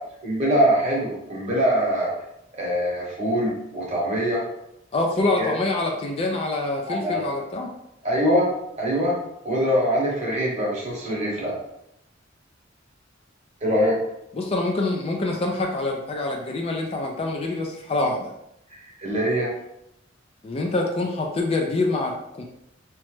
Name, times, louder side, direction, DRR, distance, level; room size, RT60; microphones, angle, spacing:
voice 1, 0.2-2.1 2.6-4.4 5.4-5.5 6.9-7.2 8.0-8.5 8.8-9.2 9.4-11.5 13.6-14.0 19.0-19.5, equal, 35° right, -4 dB, 1.0 m, -23 dB
voice 2, 4.9-7.7 14.3-18.3 20.4-22.4, left 2 dB, 30° left, 1 dB, 0.3 m, -25 dB
2.9 x 2.1 x 3.2 m, 0.81 s
head